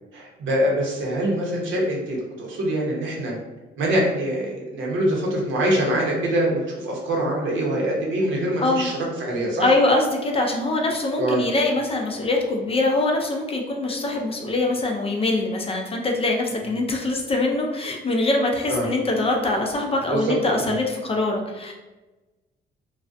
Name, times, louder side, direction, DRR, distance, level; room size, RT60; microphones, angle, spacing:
voice 1, 0.1-3.3 3.8-9.7 11.2-11.4 18.7-18.9 20.1-20.8, right 1 dB, 75° right, -2 dB, 0.8 m, -24 dB
voice 2, 8.6-8.9 9.6-21.7, left 2 dB, 30° left, 1 dB, 0.4 m, -23 dB
2.4 x 2.1 x 2.5 m, 1.1 s
cardioid pair, 90°, 20 cm